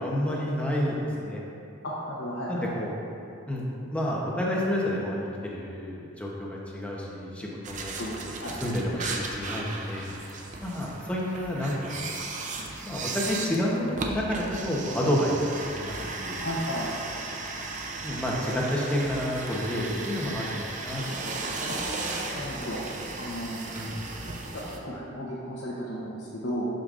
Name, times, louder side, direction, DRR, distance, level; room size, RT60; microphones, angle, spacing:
voice 1, 0.0-1.4 2.5-2.9 3.5-3.6 3.9-7.9 8.4-10.1 10.6-12.1 12.8-16.4 18.0-21.0 23.7-23.9, equal, 5° left, -4 dB, 0.9 m, -29 dB
voice 2, 1.8-2.7 8.0-8.5 16.4-16.9 21.7-21.8 22.3-22.8 23.2-23.6 24.5-26.7, equal, 65° left, -7 dB, 0.9 m, -34 dB
sound 1, 7.6-24.8, right 3 dB, 35° right, 0.5 m, -36 dB
11.0 x 5.2 x 2.5 m, 2.7 s
head